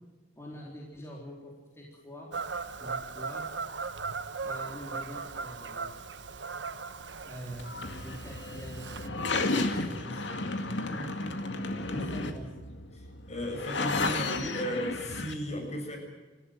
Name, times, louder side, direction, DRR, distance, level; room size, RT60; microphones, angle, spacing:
voice 1, 0.4-2.3 2.8-3.5 4.4-6.0 7.2-9.2 9.6-10.5 10.7-11.1 11.9-12.5, equal, 15° left, -3 dB, 4.0 m, -45 dB
Fowl / Bird vocalization bird call bird song, 2.3-9.1, right 4 dB, 75° right, 1.3 m, -38 dB
sound 1, 7.6-15.3, left 3 dB, 85° left, 2.2 m, -33 dB
voice 2, 11.8-12.3 13.3-16.0, equal, 40° left, 3 dB, 7.1 m, -35 dB
27.5 x 15.5 x 7.7 m, 1.2 s
head